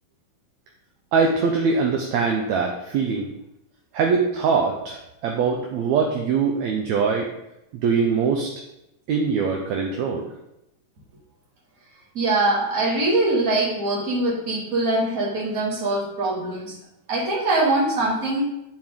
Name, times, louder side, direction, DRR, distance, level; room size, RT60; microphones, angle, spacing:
voice 1, 1.1-3.3 3.9-7.3 7.8-8.5 9.1-10.3, right 5 dB, 75° right, 0 dB, 1.8 m, -22 dB
voice 2, 12.1-16.7 17.1-18.5, right 2 dB, 30° right, -5 dB, 2.2 m, -23 dB
10.5 x 4.5 x 3.7 m, 0.86 s
omnidirectional pair, 3.7 m